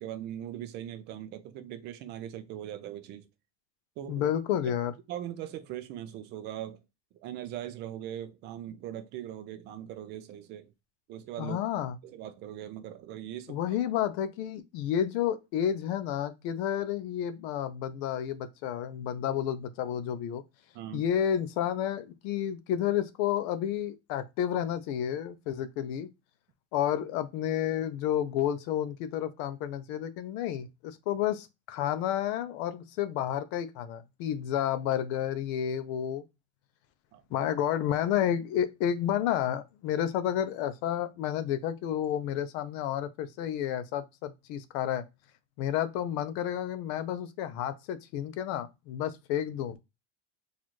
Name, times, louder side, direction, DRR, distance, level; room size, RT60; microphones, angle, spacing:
voice 1, 0.0-3.3 4.0-4.2 5.1-6.8 7.1-10.7 11.1-11.6 12.0-13.6 20.7-21.1 34.5-34.7 37.1-37.5, right 11 dB, 35° right, 0.4 m, -40 dB
voice 2, 4.1-4.9 11.4-12.0 13.5-20.4 20.9-26.1 26.7-36.2 37.3-45.0 45.6-49.8, left 10 dB, 50° left, 0.5 m, -31 dB
4.2 x 2.4 x 3.0 m
cardioid pair, 170°, 32 cm